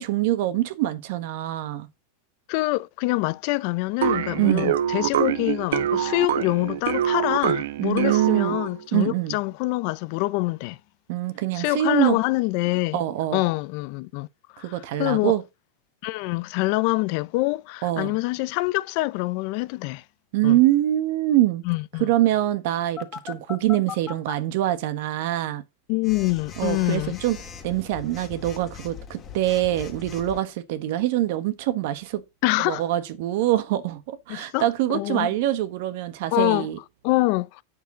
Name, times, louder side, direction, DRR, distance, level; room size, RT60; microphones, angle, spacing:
voice 1, 0.0-1.9 4.3-4.7 7.8-8.6 8.9-9.4 11.1-12.2 12.9-13.4 14.6-15.4 17.8-18.1 20.3-21.6 22.0-25.6 26.6-27.4 27.6-32.2 32.6-36.8, right 14 dB, 55° right, 1.3 m, -24 dB
voice 2, 2.5-10.8 11.5-13.0 13.3-14.3 14.5-15.4 16.0-20.0 20.4-20.6 21.7-22.1 25.9-27.2 32.4-32.8 34.3-35.3 36.3-36.7 37.0-37.6, left 21 dB, 45° left, 0.5 m, -25 dB
sound 1, 4.0-8.8, right 10 dB, 75° right, 0.8 m, -25 dB
Telephone, 23.0-24.3 26.0-30.4, left 7 dB, 20° left, 1.8 m, -39 dB
8.7 x 6.7 x 4.0 m
supercardioid pair, 155°, 0 cm